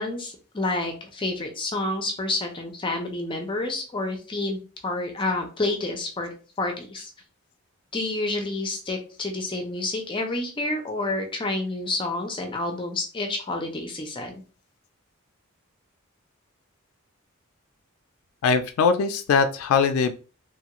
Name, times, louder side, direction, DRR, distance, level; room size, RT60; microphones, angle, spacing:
voice 1, 0.0-7.1 7.9-14.4, left 2 dB, 25° left, 3 dB, 0.5 m, -29 dB
voice 2, 18.4-20.1, left 5 dB, 85° left, 8 dB, 0.3 m, -21 dB
2.9 x 2.4 x 2.8 m, 0.36 s
head